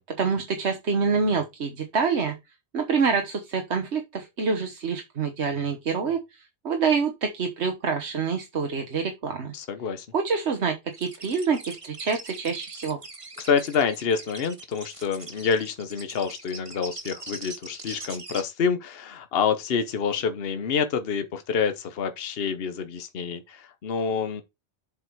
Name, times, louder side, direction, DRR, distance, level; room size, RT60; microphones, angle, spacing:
voice 1, 0.2-2.3 2.7-9.5 10.1-13.0, right 5 dB, 75° right, 1.5 m, -26 dB
voice 2, 9.5-10.1 13.4-24.4, left 6 dB, 60° left, 1.1 m, -27 dB
sound 1, 10.9-18.4, right 2 dB, 30° right, 1.4 m, -41 dB
7.6 x 5.5 x 4.6 m
omnidirectional pair, 1.2 m